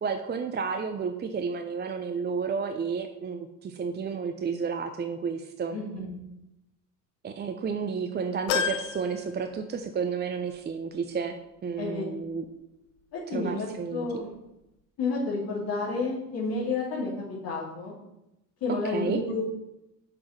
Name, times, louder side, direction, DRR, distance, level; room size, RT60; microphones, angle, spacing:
voice 1, 0.0-5.8 7.2-11.3 11.6-12.4 13.3-14.3 18.8-19.2, right 5 dB, 20° right, 7 dB, 0.7 m, -31 dB
voice 2, 5.7-6.1 11.8-12.0 13.1-14.3 15.0-17.9 18.6-19.4, left 3 dB, 45° left, -8 dB, 3.2 m, -30 dB
sound 1, 8.5-10.1 10.6-10.7 11.9-12.0, left 7 dB, 60° left, 1.1 m, -32 dB
9.0 x 6.3 x 6.0 m, 0.90 s
figure-of-eight pair, 60°, 48 cm